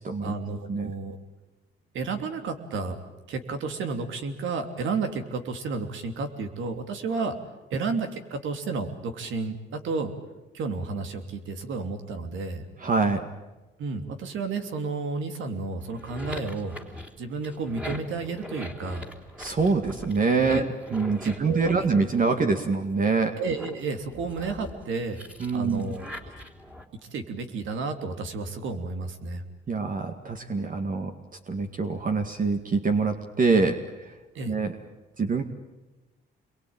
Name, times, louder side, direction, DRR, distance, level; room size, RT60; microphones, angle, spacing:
voice 1, 0.2-1.2 1.9-3.0 3.3-7.3 7.7-10.1 10.5-12.6 13.8-16.8 17.2-19.0 20.5-20.6 21.2-21.9 23.4-25.2 25.5-26.1 27.1-29.4 34.3-34.5, right 4 dB, 75° right, 7 dB, 3.1 m, -32 dB
voice 2, 12.8-13.3 19.4-23.4 25.4-25.8 29.7-31.1 31.5-33.8 34.5-34.8 35.2-35.4, right 4 dB, 45° right, 5 dB, 2.1 m, -25 dB
sound 1, 15.8-22.5 22.9-26.8, left 1 dB, 5° right, 3.4 m, -42 dB
27.5 x 22.5 x 9.0 m, 1.1 s
cardioid pair, 90°, 20 cm